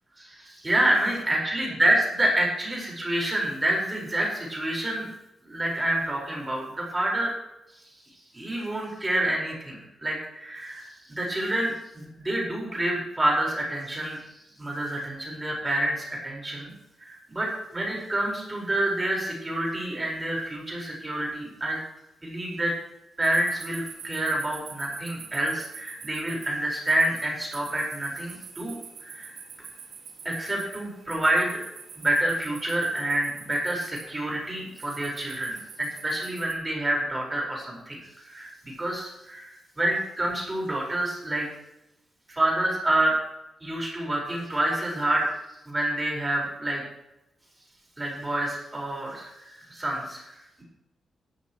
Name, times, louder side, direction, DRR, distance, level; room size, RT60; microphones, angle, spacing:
voice 1, 0.2-5.1 5.4-7.3 8.3-14.2 14.6-16.7 17.0-21.8 22.2-22.7 23.2-28.7 29.0-29.3 30.2-31.6 32.0-41.5 42.3-43.2 43.6-45.3 45.6-46.8 48.0-50.6, right 1 dB, 15° right, -2 dB, 4.7 m, -28 dB
sound 1, 23.2-36.5, right 6 dB, 80° right, 2.0 m, -45 dB
16.5 x 12.5 x 3.1 m, 0.90 s
wide cardioid pair, 145°, 0 cm